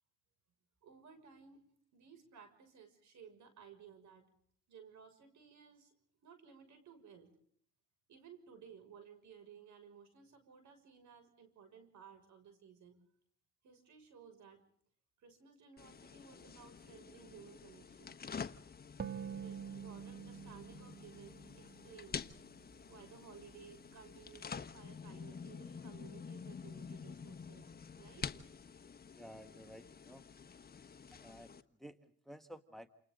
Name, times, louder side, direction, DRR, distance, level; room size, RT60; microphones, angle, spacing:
voice 1, 0.8-1.6 1.9-4.3 4.7-5.9 6.2-7.3 8.1-13.0 13.6-14.7 15.2-18.3 19.3-22.2 22.9-28.3, right 7 dB, 70° right, 8 dB, 6.4 m, -58 dB
sound 1, 15.8-31.6, left 6 dB, 30° left, 1.2 m, -49 dB
sound 2, 19.0-22.5, right 7 dB, 30° right, 2.1 m, -47 dB
voice 2, 29.1-30.2 31.1-32.9, equal, ahead, 9 dB, 1.6 m, -54 dB
28.5 x 28.5 x 3.9 m, 0.63 s
cardioid pair, 90°, 30 cm